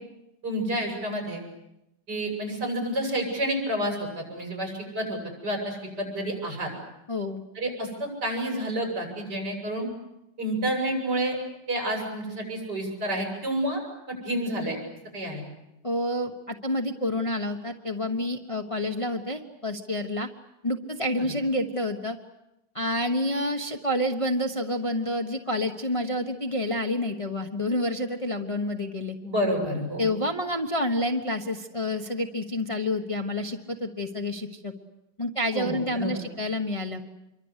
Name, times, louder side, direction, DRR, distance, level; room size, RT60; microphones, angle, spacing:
voice 1, 0.4-1.4 2.1-6.7 7.5-9.9 10.4-11.4 11.7-13.8 14.1-14.8 15.1-15.4 29.2-30.1 35.5-36.2, right 1 dB, 70° right, 1 dB, 8.5 m, -29 dB
voice 2, 7.1-7.4 15.8-20.3 20.6-22.2 22.7-29.2 30.0-34.7 35.2-37.0, left 1 dB, 20° left, 3 dB, 1.2 m, -28 dB
27.0 x 23.5 x 8.3 m, 0.88 s
omnidirectional pair, 1.9 m